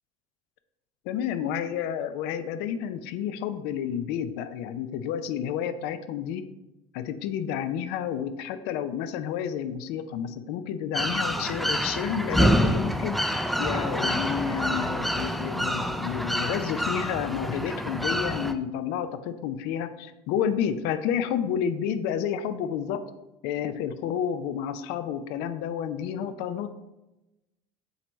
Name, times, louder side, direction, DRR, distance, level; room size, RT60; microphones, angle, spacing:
voice 1, 1.1-6.5 6.9-23.1 23.4-26.7, left 8 dB, 75° left, 11 dB, 0.5 m, -30 dB
sound 1, 10.9-18.5, equal, ahead, 0.4 m, -27 dB
7.9 x 3.2 x 3.9 m, 0.99 s
supercardioid pair, 90°, 17 cm